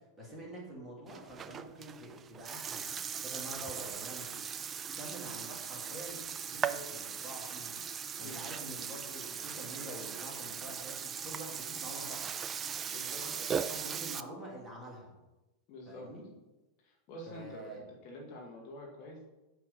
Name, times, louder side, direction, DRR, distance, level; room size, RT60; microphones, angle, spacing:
voice 1, 0.0-3.0 3.2-4.4 4.7-6.2 6.5-7.8 8.2-12.3 13.2-15.1 15.9-16.2 17.3-17.9, right 1 dB, 5° right, -4 dB, 2.4 m, -47 dB
Burping eructation, 1.1-14.2, right 7 dB, 25° right, 0.3 m, -39 dB
voice 2, 12.9-13.6 15.7-16.1 16.8-17.8 18.0-19.2, left 1 dB, 40° left, -1 dB, 1.3 m, -47 dB
8.5 x 3.2 x 5.2 m, 1.1 s
figure-of-eight pair, 90°, 0 cm